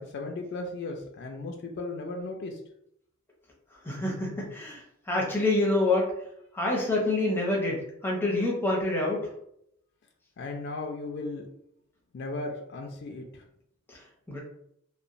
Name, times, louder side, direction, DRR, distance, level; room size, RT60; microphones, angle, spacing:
voice 1, 0.0-2.6 10.4-11.5 12.1-13.4, left 2 dB, 55° left, 2 dB, 0.3 m, -36 dB
voice 2, 3.8-6.1 6.5-9.3 14.3-14.4, left 2 dB, 10° left, -2 dB, 0.6 m, -27 dB
2.9 x 2.0 x 2.5 m, 0.74 s
head